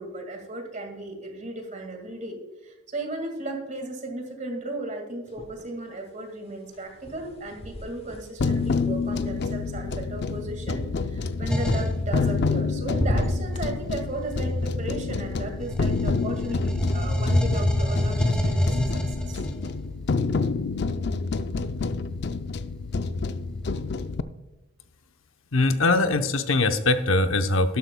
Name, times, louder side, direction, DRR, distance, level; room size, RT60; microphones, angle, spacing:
voice 1, 0.0-19.4, right 2 dB, 35° right, 3 dB, 2.0 m, -35 dB
sound 1, 5.3-6.0 6.3-10.4 12.0-12.6 12.9-13.7, equal, 30° left, 1.0 m, -34 dB
sound 2, 8.4-24.2, left 4 dB, 55° left, 0.5 m, -28 dB
sound 3, 11.5-12.0 13.3-15.2 15.6-19.7, left 1 dB, 5° left, 1.2 m, -27 dB
voice 2, 25.5-27.8, left 2 dB, 75° left, 8 dB, 0.8 m, -22 dB
12.5 x 12.0 x 2.3 m, 1.1 s
head